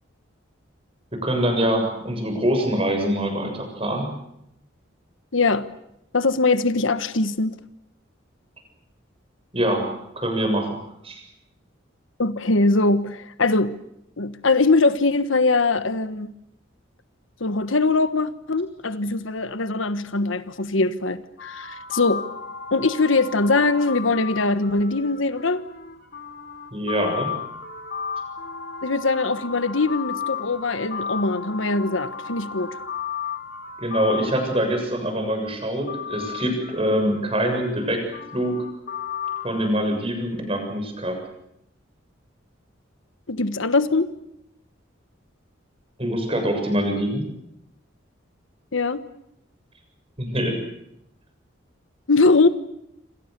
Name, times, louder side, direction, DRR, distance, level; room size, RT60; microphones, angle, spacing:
voice 1, 1.2-4.1 9.5-11.2 26.7-27.4 33.8-38.0 38.3-38.6 39.4-41.2 46.0-47.3 50.2-50.6, equal, 30° right, 7.1 m, -24 dB
voice 2, 5.3-5.7 6.1-7.6 12.2-13.7 14.2-16.3 17.4-22.2 22.7-25.6 28.8-32.8 43.3-44.1 48.7-49.0 52.1-52.5, left 3 dB, 75° left, 1.3 m, -21 dB
sound 1, 21.4-35.2 35.9-39.7, left 6 dB, 50° left, 3.3 m, -34 dB
28.0 x 26.5 x 6.8 m
head